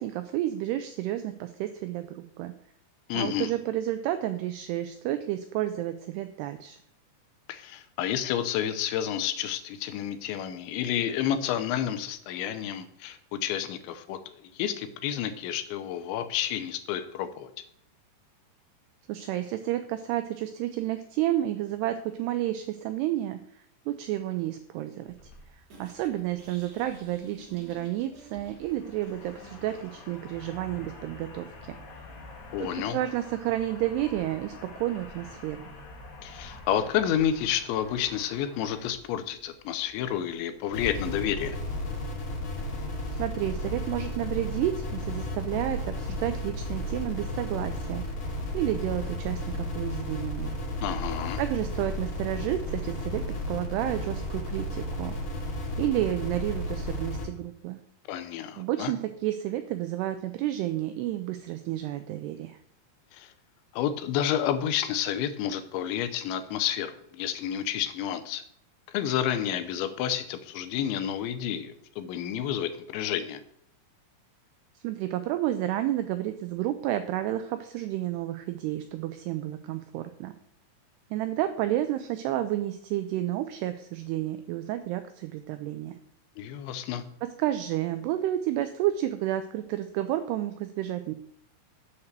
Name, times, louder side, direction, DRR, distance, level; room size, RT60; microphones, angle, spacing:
voice 1, 0.0-2.5 3.1-6.8 19.1-32.0 32.6-35.6 43.1-50.5 51.4-55.2 55.8-57.8 58.6-62.6 74.8-80.3 81.1-85.9 87.2-91.1, right 13 dB, 90° right, 9 dB, 2.3 m, -31 dB
voice 2, 3.1-3.5 7.5-17.5 32.5-33.0 36.2-41.6 50.8-51.4 58.1-58.9 63.1-63.3 63.7-68.4 68.9-73.4 86.4-87.0, left 10 dB, 80° left, 10 dB, 3.0 m, -30 dB
sound 1, 25.1-41.6, left 3 dB, 65° left, 1.4 m, -48 dB
sound 2, 25.7-30.7, right 2 dB, 50° right, 2.4 m, -52 dB
sound 3, 40.7-57.3, left 1 dB, 45° left, 3.5 m, -33 dB
8.0 x 5.7 x 6.7 m, 0.69 s
omnidirectional pair, 5.3 m